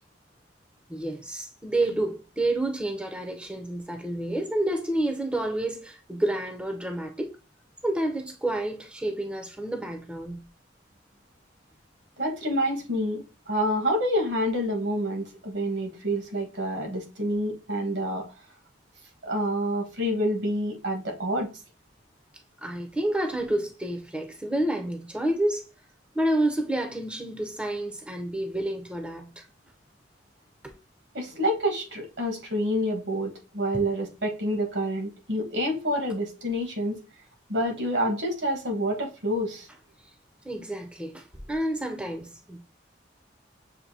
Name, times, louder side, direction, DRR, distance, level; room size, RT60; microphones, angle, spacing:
voice 1, 0.9-7.3 7.8-10.4 22.6-25.7 26.1-29.5 30.6-30.7 40.4-42.6, right 1 dB, 5° right, 0.4 m, -29 dB
voice 2, 12.2-18.2 19.2-21.5 31.1-37.0 37.5-39.7, equal, 70° right, 1.2 m, -28 dB
6.5 x 2.6 x 2.7 m
head